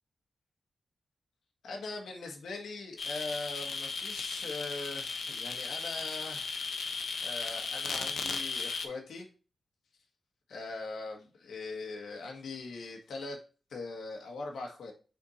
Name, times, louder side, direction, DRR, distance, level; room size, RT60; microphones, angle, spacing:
voice 1, 1.6-9.3 10.5-13.4 13.7-14.9, left 3 dB, 85° left, 1 dB, 1.3 m, -41 dB
sound 1, 3.0-8.9, left 4 dB, 60° left, 0.9 m, -36 dB
5.6 x 4.4 x 4.1 m, 0.35 s
wide cardioid pair, 140°, 0 cm